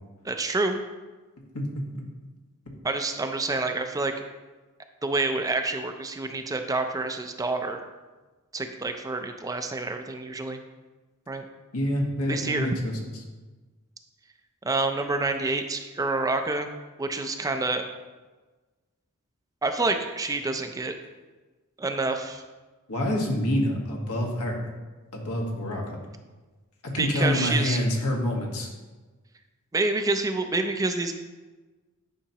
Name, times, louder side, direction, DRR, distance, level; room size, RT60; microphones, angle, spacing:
voice 1, 0.2-0.8 2.8-4.1 5.0-7.8 8.5-10.6 11.3-11.4 12.3-12.7 14.6-16.7 17.0-17.8 19.6-20.9 21.8-22.4 27.0-27.8 29.7-31.1, right 3 dB, 15° right, 6 dB, 0.4 m, -27 dB
voice 2, 1.5-2.0 11.7-13.1 22.9-24.7 25.1-26.0 26.8-28.7, left 1 dB, 85° left, 0 dB, 1.5 m, -27 dB
9.8 x 5.7 x 2.9 m, 1.3 s
head